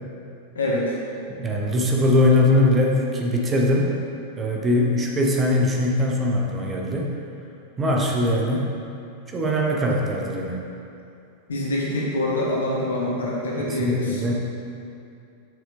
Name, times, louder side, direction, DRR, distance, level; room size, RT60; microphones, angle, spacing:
voice 1, 0.5-0.9 11.5-14.2, left 1 dB, 65° left, -4 dB, 1.5 m, -25 dB
voice 2, 1.3-3.9 4.4-7.1 7.8-8.7 9.3-10.6 13.6-14.3, left 1 dB, 20° right, -1 dB, 0.9 m, -21 dB
6.9 x 6.2 x 3.4 m, 2.6 s
figure-of-eight pair, 90°, 0 cm